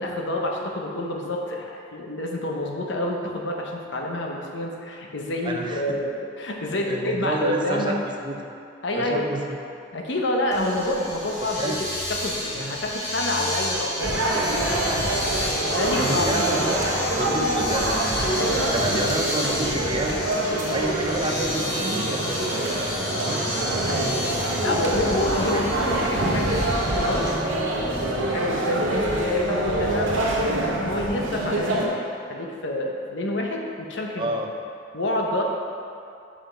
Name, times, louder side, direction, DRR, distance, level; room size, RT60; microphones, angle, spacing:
voice 1, 0.0-6.1 6.4-7.9 8.8-9.3 9.9-11.8 12.1-14.8 15.3-16.3 18.3-18.7 23.1-23.3 23.9-27.3 27.6-30.2 30.8-34.3 34.9-35.4, left 1 dB, 60° left, 0 dB, 0.8 m, -28 dB
voice 2, 5.4-5.8 6.7-8.5 8.9-9.6 11.6-11.8 12.5-12.7 15.9-16.8 17.1-18.4 18.7-20.2 20.7-22.4 23.1-23.5 24.7-24.8 25.4-25.6 34.2-34.5, right 1 dB, 25° right, 2 dB, 0.5 m, -29 dB
Domestic sounds home sounds, 10.5-27.3, left 1 dB, 30° left, 1.7 m, -31 dB
sound 1, 14.0-31.9, right 1 dB, 70° right, 1.0 m, -25 dB
5.6 x 5.0 x 5.6 m, 2.5 s
head